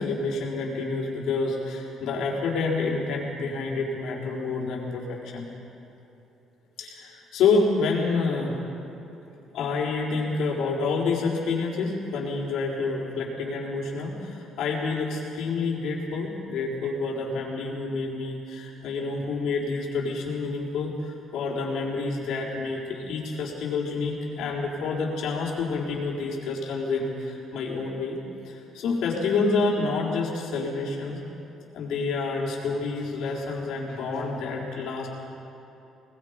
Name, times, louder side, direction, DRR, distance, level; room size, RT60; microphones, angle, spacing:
voice 1, 0.0-5.5 6.8-8.6 9.5-28.2 28.4-31.2 31.7-35.1, left 4 dB, 75° left, -3 dB, 4.3 m, -28 dB
25.5 x 20.0 x 5.3 m, 3.0 s
cardioid pair, 160°, 0 cm